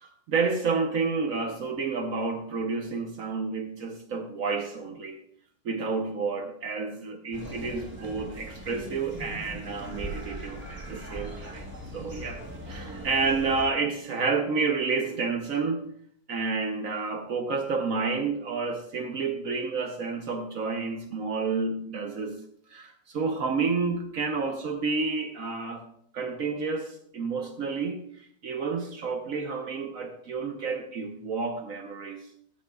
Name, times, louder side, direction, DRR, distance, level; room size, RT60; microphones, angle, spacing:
voice 1, 0.0-5.2 5.6-15.9 16.3-22.4 22.7-25.8 26.1-32.2, right 4 dB, 60° right, 6 dB, 0.9 m, -30 dB
sound 1, 7.3-13.7, right 1 dB, 15° right, 1.1 m, -40 dB
13.5 x 10.0 x 2.3 m, 0.67 s
omnidirectional pair, 2.3 m